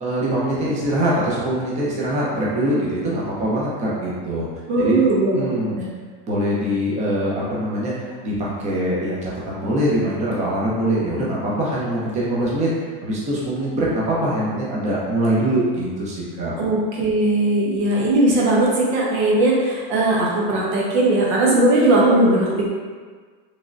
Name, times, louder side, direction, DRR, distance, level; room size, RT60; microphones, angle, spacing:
voice 1, 0.0-4.5 4.8-5.0 5.3-5.7 6.3-7.9 8.2-12.7 13.0-16.5, right 1 dB, 20° right, -6 dB, 0.8 m, -23 dB
voice 2, 4.7-5.4 5.7-5.9 16.6-22.6, right 2 dB, 65° right, -4 dB, 1.0 m, -18 dB
3.6 x 3.2 x 2.5 m, 1.5 s
supercardioid pair, 135°, 31 cm